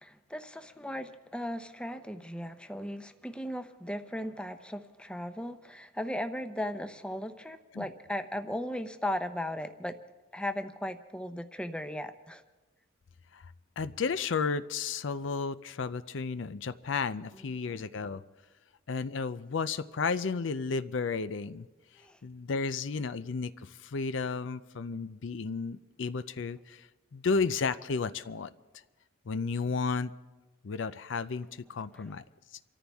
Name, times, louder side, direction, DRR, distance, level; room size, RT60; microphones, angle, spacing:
voice 1, 0.0-9.9 10.3-12.4 17.3-17.4 22.0-22.2 31.9-32.1, left 1 dB, 5° left, 8 dB, 0.7 m, -37 dB
voice 2, 13.8-18.2 18.9-21.7 22.2-26.8 27.1-28.5 29.3-30.1 30.6-32.2, left 4 dB, 70° left, 14 dB, 0.5 m, -33 dB
28.0 x 14.0 x 3.5 m, 1.2 s
head